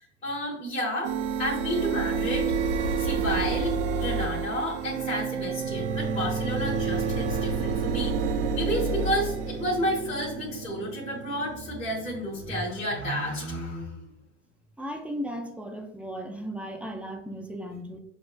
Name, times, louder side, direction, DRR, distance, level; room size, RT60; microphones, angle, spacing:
voice 1, 0.2-1.1 1.4-2.5 3.0-8.1 8.5-14.0, equal, 20° left, -6 dB, 1.4 m, -31 dB
sound 1, 1.0-12.6, right 5 dB, 70° right, 0.6 m, -29 dB
voice 2, 14.8-18.0, equal, 5° right, 3 dB, 0.4 m, -36 dB
6.7 x 2.4 x 2.5 m, 0.82 s
hypercardioid pair, 90°, 36 cm